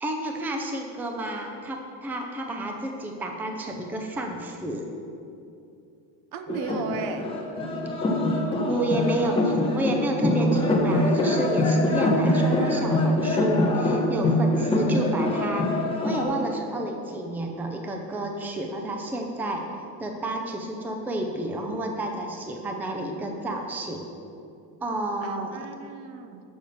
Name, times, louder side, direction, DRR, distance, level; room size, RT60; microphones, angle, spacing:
voice 1, 0.0-4.9 8.7-15.7 16.0-19.6 20.0-24.0 24.8-25.7, right 1 dB, 5° right, 2 dB, 0.4 m, -30 dB
voice 2, 6.3-7.3 8.5-8.6 14.5-14.6 18.6-18.7 25.2-26.4, right 6 dB, 70° right, 8 dB, 0.8 m, -36 dB
sound 1, 6.5-16.2, left 1 dB, 15° left, 1.0 m, -24 dB
6.8 x 6.2 x 6.7 m, 2.6 s
cardioid pair, 170°, 37 cm